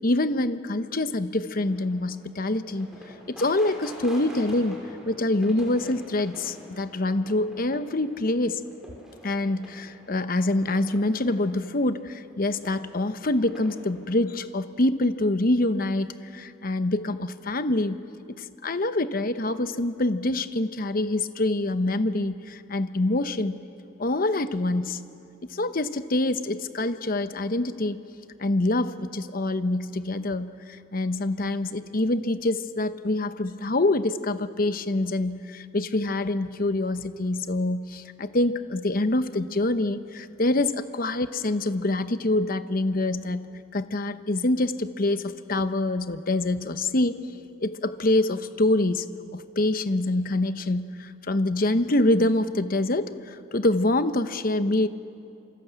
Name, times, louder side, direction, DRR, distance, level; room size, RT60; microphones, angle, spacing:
voice 1, 0.0-3.0 3.3-4.8 5.1-8.6 9.2-18.0 18.4-23.5 24.0-25.0 25.5-28.0 28.4-43.4 43.7-47.2 47.6-49.0 49.3-54.9, left 2 dB, 45° left, 11 dB, 0.9 m, -25 dB
sound 1, 1.5-14.2, equal, ahead, 5.6 m, -47 dB
28.0 x 25.5 x 8.2 m, 2.7 s
head